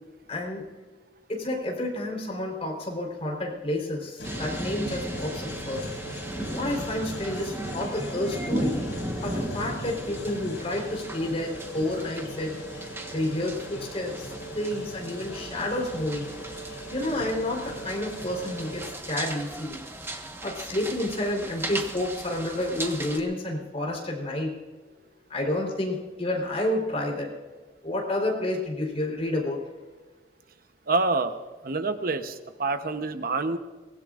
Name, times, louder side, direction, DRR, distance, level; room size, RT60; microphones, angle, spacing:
voice 1, 0.3-0.6 1.3-5.9 6.5-8.8 9.2-12.6 13.1-16.3 16.9-19.8 20.4-24.5 25.3-27.3 27.8-29.6, left 1 dB, 35° left, 0 dB, 3.9 m, -30 dB
sound 1, 4.2-18.9, right 1 dB, 90° left, 5.4 m, -39 dB
sound 2, 4.2-23.2, right 1 dB, 15° right, 1.3 m, -37 dB
voice 2, 30.9-33.6, right 3 dB, 55° right, 9 dB, 0.9 m, -27 dB
23.5 x 18.5 x 2.5 m, 1.3 s
head